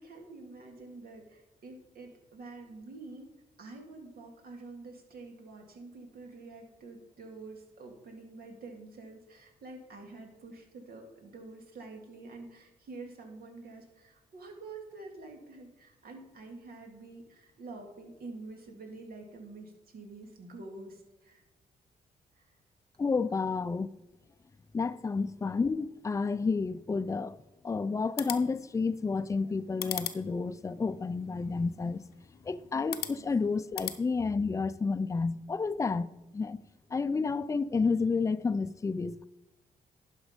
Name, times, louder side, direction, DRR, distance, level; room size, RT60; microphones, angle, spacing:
voice 1, 0.0-3.3 3.6-21.4 22.3-22.5 33.0-33.2, right 3 dB, 75° right, 2.1 m, -47 dB
voice 2, 23.0-23.9 24.7-27.4 27.6-32.0 32.4-36.6 36.9-39.3, left 4 dB, 20° left, 0.4 m, -30 dB
sound 1, 28.0-34.0, left 11 dB, 90° left, 0.7 m, -42 dB
11.0 x 5.3 x 5.1 m
cardioid pair, 75°, 16 cm